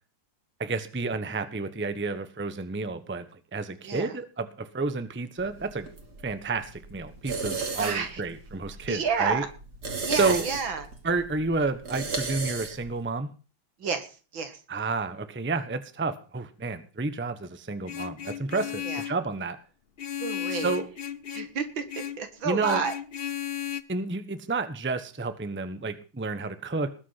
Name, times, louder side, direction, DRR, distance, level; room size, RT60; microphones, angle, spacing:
voice 1, 0.6-5.9 6.2-9.4 10.1-10.4 11.0-13.3 14.7-19.6 20.5-20.9 22.4-22.8 23.9-26.9, right 3 dB, 10° right, 11 dB, 0.9 m, -30 dB
voice 2, 3.8-4.2 7.8-8.2 8.9-9.5 10.0-10.9 13.8-14.6 18.8-19.0 20.2-20.7 21.3-22.9, right 5 dB, 70° right, 8 dB, 2.7 m, -30 dB
sound 1, 5.4-13.0, right 4 dB, 55° right, 3.1 m, -36 dB
Vehicle horn car horn honking, 17.9-19.2 20.0-21.5 21.9-22.2 22.6-23.8, left 10 dB, 70° left, 0.5 m, -35 dB
20.0 x 8.5 x 5.9 m, 0.36 s
omnidirectional pair, 2.2 m